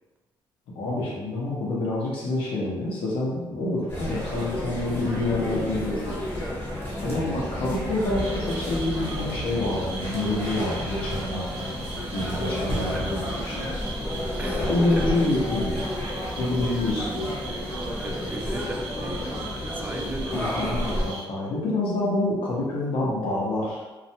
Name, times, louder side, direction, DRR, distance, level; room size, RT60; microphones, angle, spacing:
voice 1, 0.7-6.2 7.0-13.7 14.7-15.8 16.4-17.3 20.2-23.9, left 2 dB, 80° left, -5 dB, 0.8 m, -27 dB
sound 1, 3.9-21.1, left 1 dB, 25° left, 0.8 m, -31 dB
voice 2, 7.0-7.4 12.3-12.5 12.9-13.1 14.4-14.7 15.0-15.1 16.6-17.3 18.0-19.4 19.7-20.4, right 1 dB, 20° right, 0 dB, 0.4 m, -37 dB
sound 2, 8.1-21.2, right 3 dB, 85° right, 0.4 m, -40 dB
2.4 x 2.1 x 2.7 m, 1.2 s
cardioid pair, 100°, 9 cm